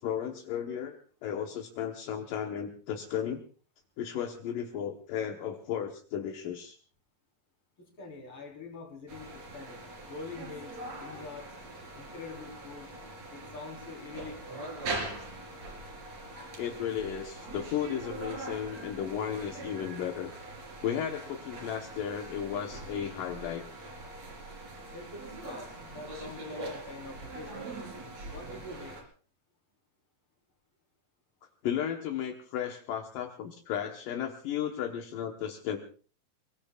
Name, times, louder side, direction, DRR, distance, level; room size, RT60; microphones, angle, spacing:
voice 1, 0.0-3.4 4.0-6.8 16.6-20.3 20.8-23.6 31.6-35.8, left 9 dB, 75° left, 2 dB, 2.8 m, -34 dB
voice 2, 7.8-11.5 11.9-12.9 13.3-14.5 24.9-27.7 28.3-29.0, left 3 dB, 40° left, 1 dB, 5.0 m, -45 dB
sound 1, 9.1-29.0, right 2 dB, 50° right, 5.2 m, -42 dB
30.0 x 19.5 x 2.4 m, 0.40 s
omnidirectional pair, 4.0 m